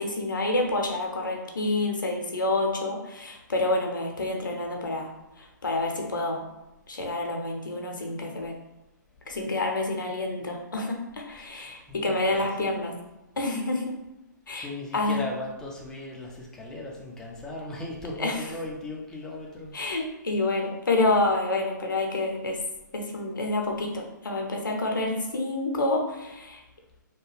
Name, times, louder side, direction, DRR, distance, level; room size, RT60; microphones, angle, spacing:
voice 1, 0.0-6.4 6.9-8.5 9.3-12.9 13.4-14.0 14.5-15.2 18.2-18.4 19.7-22.6 22.9-26.6, left 2 dB, 75° left, 2 dB, 0.7 m, -28 dB
voice 2, 11.4-12.7 14.5-19.9, left 2 dB, 5° left, -2 dB, 0.4 m, -38 dB
2.8 x 2.2 x 3.1 m, 0.96 s
figure-of-eight pair, 130°, 11 cm